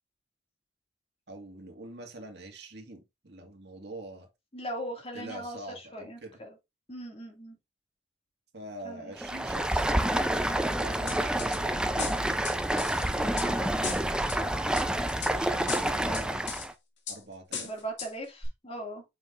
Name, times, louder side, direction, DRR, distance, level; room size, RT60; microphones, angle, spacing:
voice 1, 1.3-4.3 5.1-6.4 8.5-10.0 10.8-12.4 12.7-13.6 15.2-16.4 17.1-17.7, right 2 dB, 65° right, 2.0 m, -45 dB
voice 2, 4.5-6.6 6.9-7.6 8.8-9.1 13.3-13.8 14.3-14.8 16.0-16.3 17.6-19.0, right 1 dB, 35° left, 2.4 m, -40 dB
Stream, 9.1-16.7, right 1 dB, 5° right, 0.6 m, -28 dB
sound 1, 11.1-11.6 12.0-13.5 13.8-14.4 14.8-15.3 15.7-16.7 17.1-17.2 17.5-18.1 18.4-18.5, left 6 dB, 80° left, 2.3 m, -37 dB
7.7 x 5.8 x 2.6 m
head